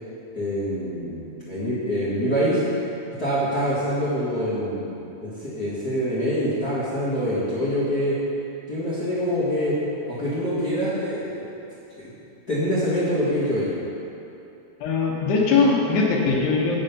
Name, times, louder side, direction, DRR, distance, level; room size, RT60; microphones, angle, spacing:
voice 1, 0.3-2.6 3.2-8.1 8.7-9.7 10.1-11.5 11.9-12.1 12.5-13.7, equal, 50° left, -11 dB, 1.1 m, -25 dB
voice 2, 14.8-16.8, left 4 dB, 80° left, -1 dB, 3.2 m, -20 dB
9.0 x 6.8 x 5.4 m, 2.8 s
omnidirectional pair, 4.9 m